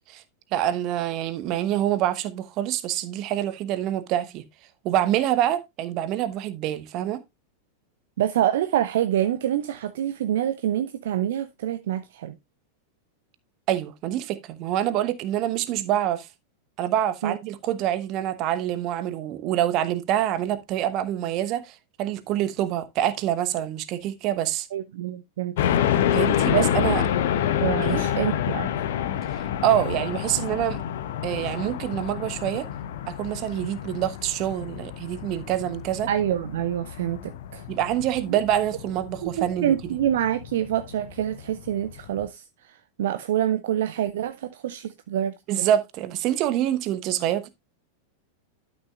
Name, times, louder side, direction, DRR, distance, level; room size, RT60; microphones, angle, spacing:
voice 1, 0.5-4.4 4.8-7.2 13.7-16.3 16.8-24.7 26.1-27.0 27.9-28.0 29.3-30.8 31.2-32.7 33.1-36.1 37.7-40.0 45.5-47.5, right 12 dB, 40° right, 0.9 m, -26 dB
voice 2, 8.2-12.3 17.2-17.3 24.7-25.5 26.5-26.9 27.6-28.7 36.1-37.6 38.3-38.4 39.2-42.4 42.7-45.7, right 11 dB, 55° right, 0.5 m, -26 dB
sound 1, 25.6-42.3, left 10 dB, 55° left, 0.9 m, -28 dB
12.0 x 6.3 x 2.4 m
figure-of-eight pair, 90°, 0 cm